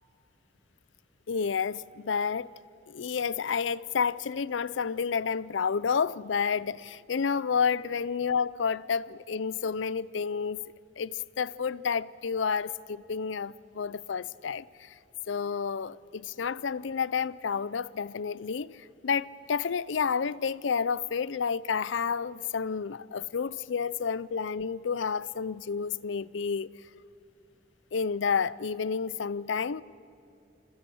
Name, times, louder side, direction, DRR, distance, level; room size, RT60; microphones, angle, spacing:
voice 1, 1.3-2.5 2.9-10.6 11.0-14.9 15.3-26.7 27.9-29.8, left 6 dB, 85° left, 0.5 m, -30 dB
28.0 x 22.0 x 7.8 m
head